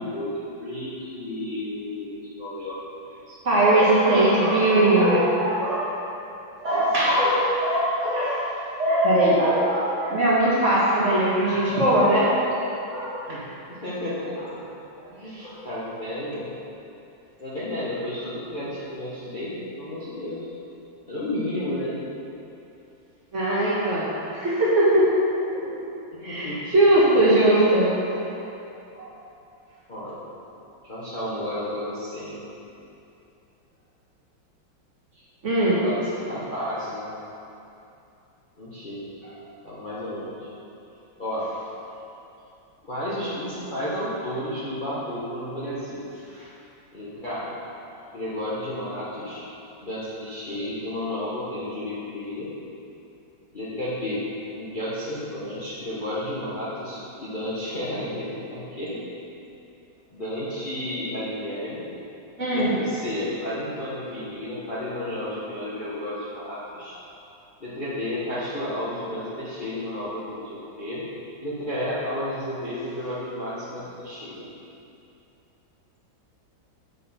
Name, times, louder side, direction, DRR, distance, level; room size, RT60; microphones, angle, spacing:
voice 1, 0.0-2.8 3.3-3.4 5.2-5.4 6.7-7.2 13.3-13.4 13.7-14.4 15.1-16.5 17.4-20.5 21.1-22.0 26.1-26.7 29.9-30.2 30.8-32.4 35.1-35.2 35.7-37.1 38.6-39.1 39.6-40.5 41.2-41.5 42.8-46.1 46.9-47.5 48.1-49.4 49.8-52.5 53.5-54.2 54.5-59.0 60.1-61.8 62.5-67.0 67.6-71.0 71.4-74.5, left 1 dB, 35° left, -10 dB, 0.9 m, -32 dB
voice 2, 3.4-5.9 6.6-8.4 8.8-12.3 12.6-13.4 15.4-15.6 23.3-24.1 24.3-25.6 26.2-28.4 28.9-29.1 35.4-35.8 62.4-62.8, right 1 dB, 40° right, -8 dB, 1.5 m, -20 dB
6.7 x 6.4 x 4.2 m, 2.8 s
omnidirectional pair, 2.2 m